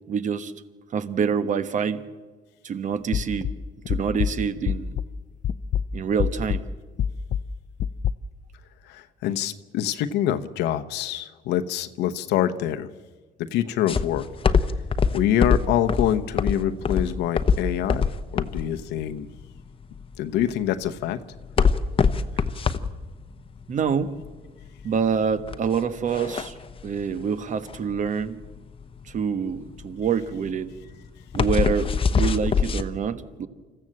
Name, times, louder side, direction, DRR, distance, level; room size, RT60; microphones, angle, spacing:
voice 1, 0.1-0.5 0.9-2.1 2.6-3.5 3.9-5.0 5.9-6.7 23.7-24.1 24.8-26.5 26.8-28.4 29.1-30.7 31.3-33.5, right 6 dB, 50° right, 12 dB, 1.3 m, -26 dB
sound 1, 3.1-5.2 5.4-8.1, left 8 dB, 50° left, 0.6 m, -27 dB
voice 2, 8.9-12.9 13.5-14.3 15.1-19.3 20.2-21.2, left 11 dB, 90° left, 9 dB, 1.0 m, -25 dB
sound 2, 13.9-32.8, left 5 dB, 30° left, 0.9 m, -24 dB
26.0 x 14.5 x 7.7 m, 1.3 s
cardioid pair, 110°, 17 cm